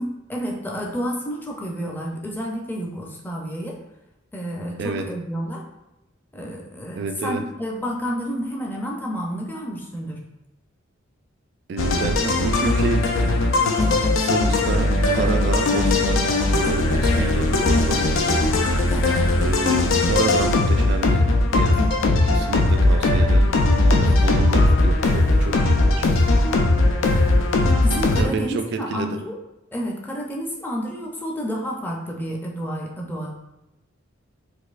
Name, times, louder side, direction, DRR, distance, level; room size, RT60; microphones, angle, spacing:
voice 1, 0.0-3.8 4.3-5.6 6.3-10.2 13.8-14.0 16.6-16.8 18.9-19.3 21.7-22.0 24.1-24.4 27.6-29.4 29.7-33.3, equal, 10° left, -2 dB, 0.5 m, -30 dB
voice 2, 4.8-5.1 6.9-7.5 11.7-13.4 14.2-18.5 19.4-21.3 21.5-23.5 23.9-26.1 28.1-29.2, right 4 dB, 60° right, 7 dB, 0.3 m, -29 dB
sound 1, 11.8-28.2, left 2 dB, 80° left, 0.4 m, -19 dB
4.1 x 2.5 x 2.4 m, 0.91 s
head